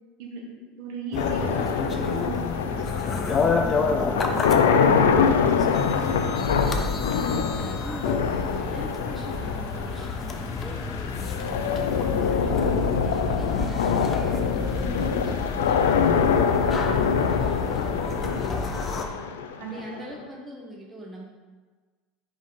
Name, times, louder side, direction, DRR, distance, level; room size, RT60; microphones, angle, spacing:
voice 1, 0.2-5.4 19.6-20.0, right 4 dB, 65° right, -1 dB, 1.5 m, -39 dB
sound 1, 1.1-19.0, left 4 dB, 35° left, 0.8 m, -30 dB
sound 2, 1.2-20.2, left 6 dB, 85° left, 0.4 m, -25 dB
voice 2, 7.5-12.7 13.0-19.2 19.6-21.2, right 1 dB, 10° right, -4 dB, 1.4 m, -42 dB
sound 3, 11.9-17.9, left 3 dB, 15° left, 0.4 m, -35 dB
5.3 x 3.8 x 5.0 m, 1.4 s
hypercardioid pair, 85°, 0 cm